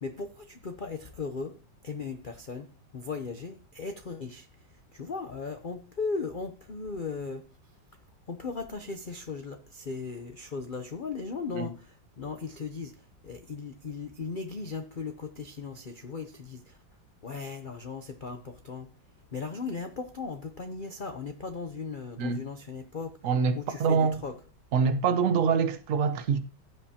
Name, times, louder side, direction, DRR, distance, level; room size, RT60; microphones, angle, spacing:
voice 1, 0.0-7.8 8.3-16.8 17.2-18.9 19.3-23.3 23.5-24.4, left 4 dB, 80° left, 0.4 m, -37 dB
voice 2, 23.2-24.2 24.7-26.4, right 6 dB, 50° right, 1.1 m, -25 dB
15.5 x 7.8 x 2.8 m
omnidirectional pair, 2.0 m